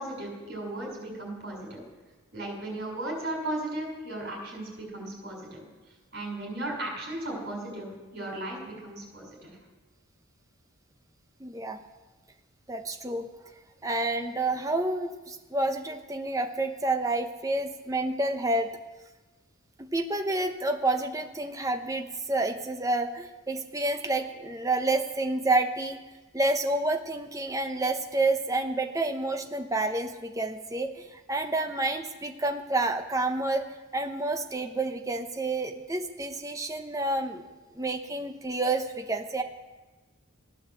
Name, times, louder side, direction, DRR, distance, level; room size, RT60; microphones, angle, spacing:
voice 1, 0.0-1.8 2.3-5.6 6.1-9.6, right 1 dB, 50° right, -1 dB, 5.7 m, -36 dB
voice 2, 11.4-11.8 12.7-13.3 13.8-18.7 19.9-26.0 26.3-33.6 33.9-37.4 37.7-39.4, right 2 dB, 15° right, 5 dB, 0.8 m, -29 dB
15.5 x 10.0 x 7.7 m, 1.2 s
head